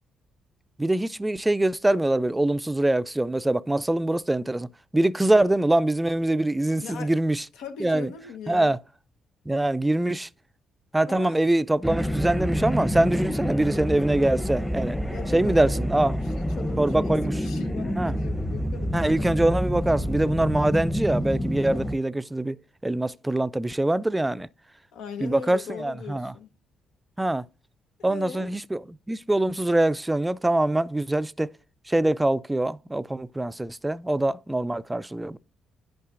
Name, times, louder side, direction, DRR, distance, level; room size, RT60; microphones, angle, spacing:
voice 1, 0.8-7.4 7.8-8.1 8.5-8.8 9.5-10.3 10.9-15.0 15.3-16.2 16.8-17.4 18.0-18.1 18.9-22.6 22.8-24.5 25.2-26.3 27.2-27.4 28.0-28.8 29.1-31.5 31.9-35.4, right 1 dB, 10° right, 0.3 m, -24 dB
voice 2, 7.5-8.8 11.0-11.4 15.1-15.9 16.2-19.3 20.0-20.5 24.9-26.5 28.0-28.5, left 6 dB, 90° left, 1.0 m, -40 dB
sound 1, 11.8-22.0, equal, 10° left, 0.8 m, -28 dB
10.0 x 5.5 x 2.5 m
cardioid pair, 90°, 0 cm